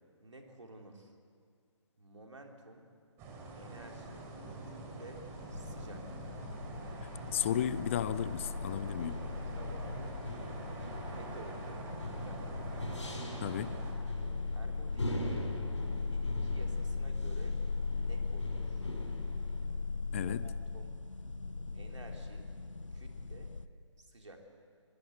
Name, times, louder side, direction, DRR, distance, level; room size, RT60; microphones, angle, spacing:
voice 1, 0.2-1.1 2.0-2.9 3.6-4.3 4.6-6.1 9.6-10.2 11.1-11.9 12.2-12.9 14.5-15.5 16.1-17.6 18.0-18.8 20.1-21.0 21.7-22.5 22.9-23.6 24.0-24.4, right 1 dB, 75° right, 3.8 m, -52 dB
sound 1, 3.2-13.9, right 3 dB, 15° right, 3.0 m, -45 dB
sound 2, 5.5-23.7, left 4 dB, 90° left, 1.0 m, -39 dB
voice 2, 7.3-9.2 13.4-13.8 20.1-20.5, left 10 dB, 25° left, 0.5 m, -34 dB
sound 3, 8.2-19.7, left 1 dB, 70° left, 6.3 m, -43 dB
24.0 x 21.0 x 8.2 m
figure-of-eight pair, 140°, 16 cm